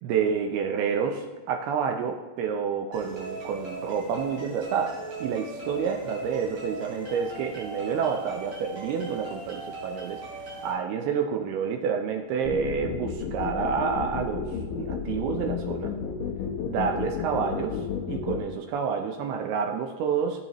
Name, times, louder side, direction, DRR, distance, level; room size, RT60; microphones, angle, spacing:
voice 1, 0.0-10.2 10.6-15.9 16.7-20.5, right 6 dB, 80° right, 3 dB, 2.4 m, -29 dB
sound 1, 2.9-10.7, right 2 dB, 35° right, 3.8 m, -39 dB
sound 2, 12.4-18.4, left 7 dB, 70° left, 2.2 m, -31 dB
16.0 x 8.6 x 3.0 m, 1.3 s
omnidirectional pair, 4.9 m